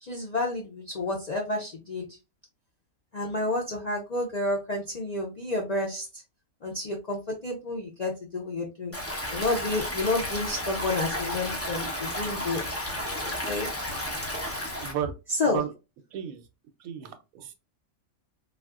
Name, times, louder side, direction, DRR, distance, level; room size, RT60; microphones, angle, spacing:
voice 1, 0.0-2.1 3.1-6.2 6.6-8.9 9.3-12.6 13.2-13.7 15.3-15.6, left 2 dB, 85° left, -1 dB, 0.3 m, -30 dB
Stream, 8.9-14.9, left 1 dB, 20° left, 0.4 m, -32 dB
voice 2, 14.8-15.1 15.5-15.7 16.1-16.4 16.8-17.5, right 9 dB, 80° right, 8 dB, 1.0 m, -33 dB
3.4 x 2.4 x 2.3 m, 0.28 s
omnidirectional pair, 1.5 m